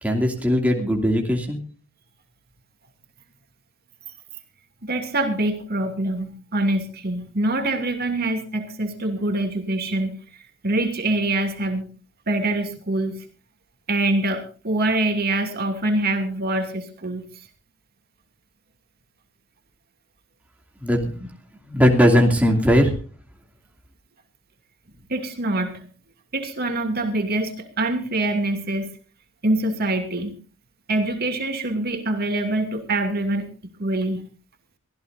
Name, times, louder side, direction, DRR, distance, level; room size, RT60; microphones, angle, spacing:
voice 1, 0.0-1.6 20.8-21.3 21.7-22.9, equal, 5° right, 1 dB, 2.6 m, -19 dB
voice 2, 4.8-10.1 10.6-11.8 12.3-13.2 13.9-17.3 25.1-25.8 26.3-28.9 29.4-30.4 30.9-33.5 33.8-34.2, right 2 dB, 50° right, 6 dB, 2.6 m, -24 dB
24.0 x 15.5 x 2.6 m, 0.37 s
head